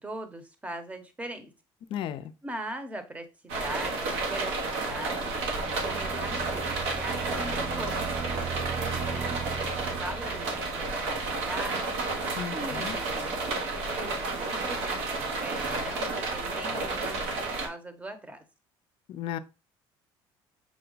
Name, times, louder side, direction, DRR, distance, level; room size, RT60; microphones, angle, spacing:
voice 1, 0.0-1.5 2.4-8.2 8.6-10.9 11.2-12.0 12.5-18.4, right 1 dB, 15° right, 0.8 m, -41 dB
voice 2, 1.9-2.3 12.4-13.0 19.1-19.4, left 10 dB, 60° left, 0.5 m, -34 dB
sound 1, 3.5-17.7, right 3 dB, 85° right, 1.2 m, -31 dB
sound 2, 4.7-12.2, right 7 dB, 30° right, 0.4 m, -39 dB
6.1 x 2.3 x 3.9 m
cardioid pair, 110°, 10 cm